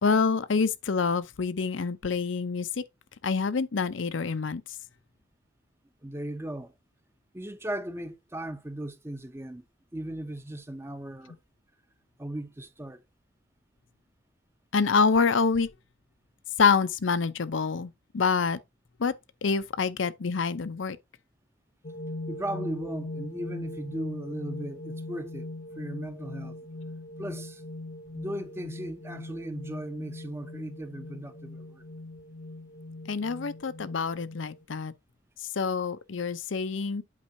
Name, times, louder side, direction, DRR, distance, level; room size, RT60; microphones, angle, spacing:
voice 1, 0.0-2.8 3.2-4.6 14.7-15.7 16.6-18.6 19.0-19.1 19.4-21.0 33.1-34.9 35.4-37.0, left 5 dB, 80° left, 0.6 m, -26 dB
voice 2, 6.0-6.7 7.3-9.6 9.9-11.4 12.2-13.0 22.3-26.5 27.2-27.6 28.1-31.8, right 1 dB, 15° right, 0.6 m, -37 dB
sound 1, 21.8-34.6, left 2 dB, 40° left, 0.7 m, -40 dB
8.4 x 5.4 x 2.7 m
head